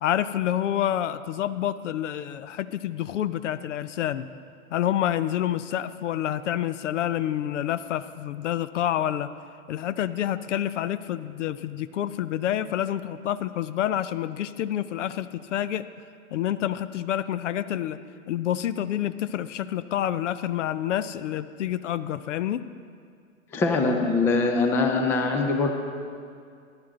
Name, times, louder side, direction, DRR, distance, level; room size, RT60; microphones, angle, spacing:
voice 1, 0.0-4.3 4.7-9.3 9.7-15.8 16.3-18.0 18.3-22.6, left 11 dB, 60° left, 15 dB, 0.6 m, -28 dB
voice 2, 23.5-25.7, left 3 dB, 5° left, 4 dB, 0.4 m, -23 dB
14.0 x 10.5 x 3.8 m, 2.2 s
hypercardioid pair, 110°, 41 cm